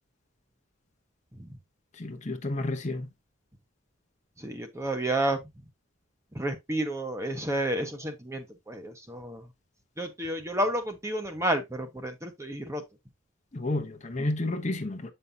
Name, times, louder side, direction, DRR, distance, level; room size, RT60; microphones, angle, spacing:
voice 1, 2.0-3.1 13.5-15.1, left 2 dB, 35° left, 0.8 m, -31 dB
voice 2, 4.4-5.4 6.3-9.4 10.0-12.8, right 1 dB, 15° right, 1.0 m, -31 dB
8.4 x 5.5 x 2.7 m
head